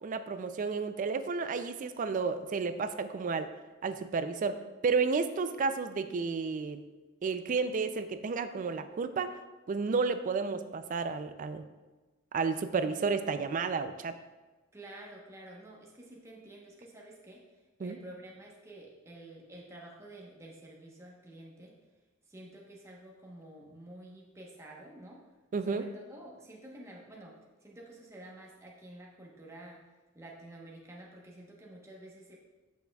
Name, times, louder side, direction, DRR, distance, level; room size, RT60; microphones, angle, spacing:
voice 1, 0.0-3.5 3.8-6.8 7.2-9.4 9.7-11.7 12.3-14.1 17.8-18.0 25.5-25.8, right 4 dB, 40° right, 11 dB, 0.3 m, -32 dB
voice 2, 14.7-17.4 17.8-21.8 22.3-25.2 25.7-27.3 27.6-29.8 30.1-32.4, right 1 dB, 15° right, -3 dB, 1.0 m, -50 dB
8.0 x 6.3 x 2.3 m, 1.2 s
head